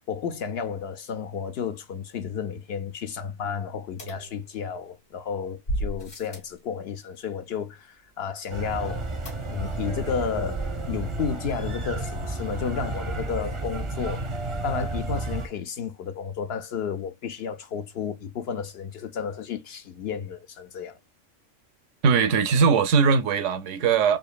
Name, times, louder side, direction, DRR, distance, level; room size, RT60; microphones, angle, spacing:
voice 1, 0.1-9.1 9.5-14.3 14.6-21.0, left 6 dB, 60° left, 0.8 m, -32 dB
sound 1, 4.0-5.0 5.7-6.6 9.3-9.8 10.1-10.2 10.5-10.6, right 1 dB, 75° left, 2.6 m, -34 dB
sound 2, 8.5-15.5, right 2 dB, 30° right, 0.6 m, -32 dB
voice 2, 22.0-24.2, right 5 dB, 75° right, 1.0 m, -20 dB
5.0 x 2.7 x 2.2 m
omnidirectional pair, 1.3 m